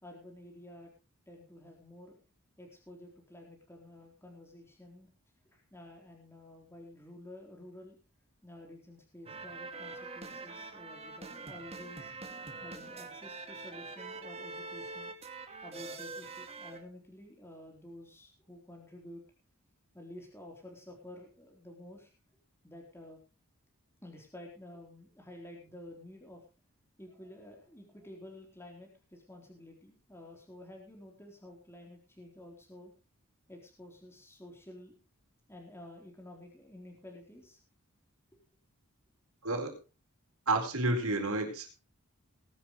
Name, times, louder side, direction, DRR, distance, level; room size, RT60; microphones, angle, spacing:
voice 1, 0.0-0.9 1.3-2.2 2.6-5.1 5.5-8.0 8.4-12.1 12.6-15.2 15.6-19.2 19.9-22.1 22.6-23.2 24.0-26.4 27.0-32.9 33.5-35.0 35.5-37.6, left 1 dB, 10° left, 0 dB, 3.8 m, -51 dB
sound 1, 9.3-16.8, right 3 dB, 30° right, 2.2 m, -44 dB
voice 2, 39.4-39.7 40.5-41.7, right 2 dB, 90° right, 2 dB, 4.3 m, -30 dB
19.5 x 11.5 x 3.2 m, 0.33 s
head